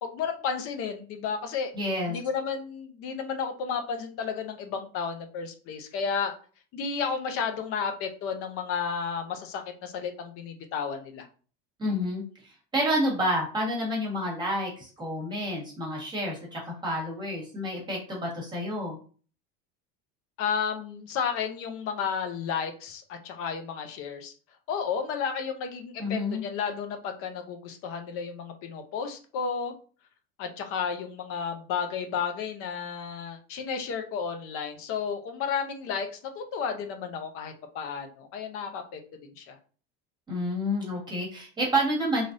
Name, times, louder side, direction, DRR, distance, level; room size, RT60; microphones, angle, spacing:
voice 1, 0.0-1.7 2.1-6.3 6.7-11.3 20.4-24.3 24.7-29.7 30.4-36.1 36.3-39.0 39.4-39.6, left 6 dB, 50° left, 6 dB, 0.6 m, -32 dB
voice 2, 1.7-2.2 11.8-19.0 26.0-26.4 40.3-42.3, equal, 15° right, -4 dB, 1.3 m, -29 dB
3.3 x 2.5 x 2.6 m, 0.39 s
cardioid pair, 150°, 29 cm